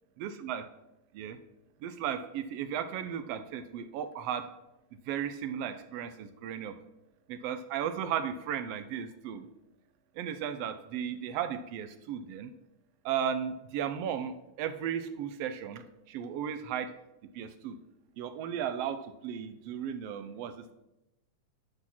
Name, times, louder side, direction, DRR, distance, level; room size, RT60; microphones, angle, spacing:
voice 1, 0.2-0.6 1.1-1.4 1.8-4.4 5.1-6.7 7.3-9.5 10.2-12.5 13.0-16.9 17.3-17.8 18.2-20.7, right 8 dB, 85° right, 9 dB, 1.3 m, -35 dB
10.5 x 6.2 x 5.9 m, 0.91 s
omnidirectional pair, 3.5 m